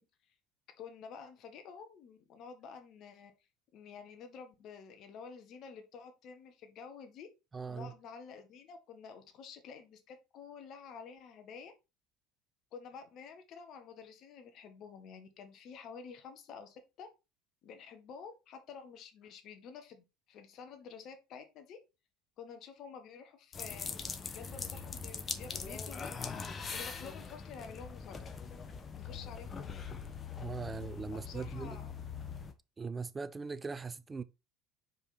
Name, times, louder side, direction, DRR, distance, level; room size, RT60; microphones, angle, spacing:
voice 1, 0.8-3.3 3.7-7.3 7.7-11.7 12.7-17.1 17.6-21.8 22.4-28.2 28.9-29.9 30.6-30.8 31.1-31.9, left 6 dB, 50° left, 1.6 m, -50 dB
voice 2, 7.5-7.9 30.4-31.8 32.8-34.2, right 4 dB, 20° right, 0.6 m, -40 dB
sound 1, 23.5-32.5, left 5 dB, 30° left, 1.1 m, -42 dB
5.2 x 4.7 x 4.2 m
hypercardioid pair, 75°, 0 cm